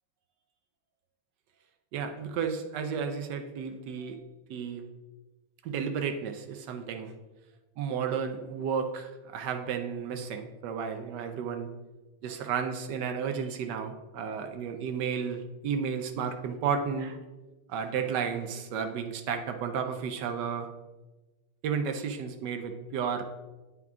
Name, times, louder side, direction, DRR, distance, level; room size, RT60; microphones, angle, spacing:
voice 1, 1.9-4.2 4.5-4.8 5.6-7.1 7.8-11.7 12.2-17.2 17.7-20.7 21.6-23.2, right 6 dB, 75° right, 6 dB, 1.0 m, -32 dB
9.8 x 3.5 x 3.5 m, 1.2 s
omnidirectional pair, 2.3 m